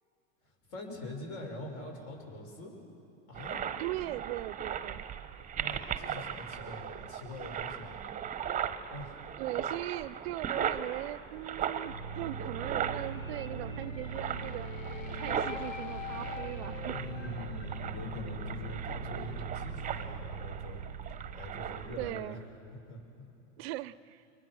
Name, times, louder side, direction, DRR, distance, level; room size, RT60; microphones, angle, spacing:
voice 1, 0.7-2.7 3.3-3.6 5.5-8.0 8.9-9.2 16.9-20.8 21.3-22.4 22.9-23.2, left 1 dB, 50° left, 2 dB, 6.7 m, -44 dB
sound 1, 3.3-22.2, right 8 dB, 20° right, 1.0 m, -38 dB
voice 2, 3.8-5.0 9.4-14.7 15.1-17.0 21.7-22.4 23.6-24.2, right 16 dB, 55° right, 17 dB, 0.6 m, -39 dB
sound 2, 11.8-22.8, right 2 dB, 75° left, 1.9 m, -41 dB
29.5 x 24.0 x 6.4 m, 2.7 s
hypercardioid pair, 100°, 38 cm